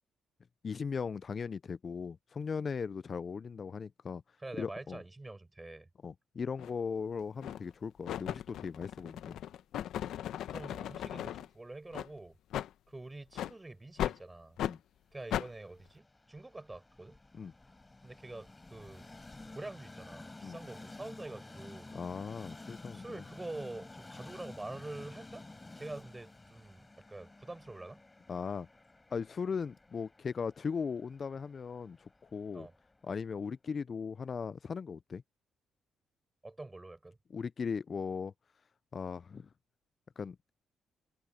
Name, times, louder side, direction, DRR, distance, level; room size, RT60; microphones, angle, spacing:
voice 1, 0.6-4.2 4.6-5.0 6.0-9.4 14.6-14.8 17.3-17.5 20.4-20.6 21.9-23.0 28.3-28.7 29.1-32.7 33.0-35.2 37.3-38.3 38.9-39.5 40.2-40.5, left 5 dB, 40° left, 0.3 m, -38 dB
voice 2, 4.4-5.9 10.5-12.4 12.9-14.6 15.1-17.2 18.0-19.1 19.5-21.9 22.9-25.4 25.7-28.0 32.5-32.7 36.4-37.2, right 2 dB, 15° right, 7.6 m, -46 dB
sound 1, 6.6-6.7 7.4-7.7 8.1-11.5 11.9-12.1 12.5-12.7 13.3-13.5 14.0-14.2 14.6-14.8 15.3-15.5, left 11 dB, 80° left, 0.9 m, -37 dB
Train, 15.2-33.2, left 2 dB, 15° left, 7.3 m, -52 dB
cardioid pair, 90°, 0 cm